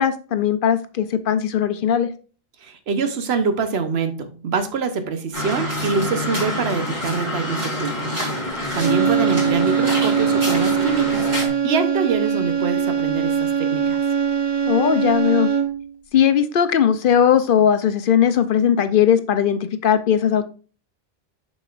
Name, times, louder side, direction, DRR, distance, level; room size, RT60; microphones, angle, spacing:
voice 1, 0.0-2.1 14.7-15.5 16.1-20.5, left 8 dB, 65° left, 0.7 m, -18 dB
voice 2, 2.6-8.2 8.7-11.3 11.6-14.0, right 5 dB, 85° right, 1.1 m, -25 dB
sound 1, 5.3-11.5, left 1 dB, 60° right, 3.0 m, -27 dB
sound 2, 8.7-15.9, right 7 dB, 25° right, 0.8 m, -21 dB
6.9 x 6.3 x 2.4 m
omnidirectional pair, 1.0 m